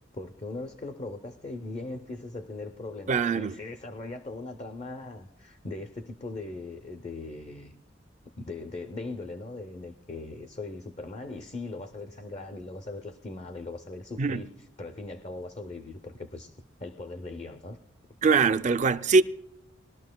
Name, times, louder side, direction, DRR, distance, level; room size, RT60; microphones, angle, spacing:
voice 1, 0.1-7.7 8.3-17.8, left 2 dB, 30° left, 0.5 m, -39 dB
voice 2, 3.1-3.5 14.2-14.4 18.2-19.2, right 4 dB, 40° right, 0.4 m, -22 dB
21.0 x 12.5 x 2.2 m
head